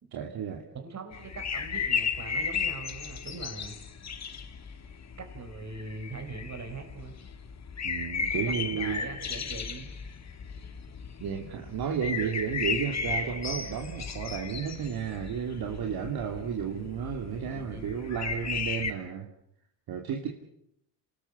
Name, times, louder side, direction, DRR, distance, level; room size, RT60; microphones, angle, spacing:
voice 1, 0.1-0.6 7.8-9.0 11.2-19.3 19.9-20.3, right 7 dB, 65° right, 2 dB, 2.9 m, -32 dB
voice 2, 0.7-3.7 5.2-7.2 8.3-9.9 17.5-17.9, right 3 dB, 45° right, 5 dB, 4.7 m, -42 dB
sound 1, 1.1-18.9, left 6 dB, 40° left, 2.4 m, -35 dB
27.5 x 19.5 x 8.5 m, 0.79 s
cardioid pair, 90°, 39 cm